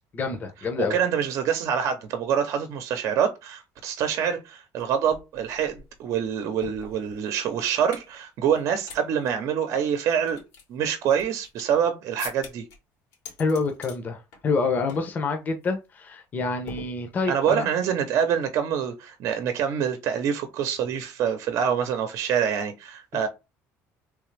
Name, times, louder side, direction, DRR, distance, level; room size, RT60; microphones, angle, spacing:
voice 1, 0.1-1.0 13.4-17.7 23.1-23.3, left 4 dB, 30° left, 0.8 m, -27 dB
voice 2, 0.8-10.4 10.7-12.7 17.3-23.3, right 8 dB, 60° right, 0.7 m, -26 dB
sound 1, 4.8-4.9 5.1-8.1 8.5-9.0 9.3-9.4 9.9-11.8 12.2-12.8 13.1-14.0 14.3-14.6 14.9-15.2 15.5-15.7 16.7-17.4, left 5 dB, 85° left, 2.0 m, -43 dB
3.5 x 2.9 x 3.3 m
cardioid pair, 125°, 6 cm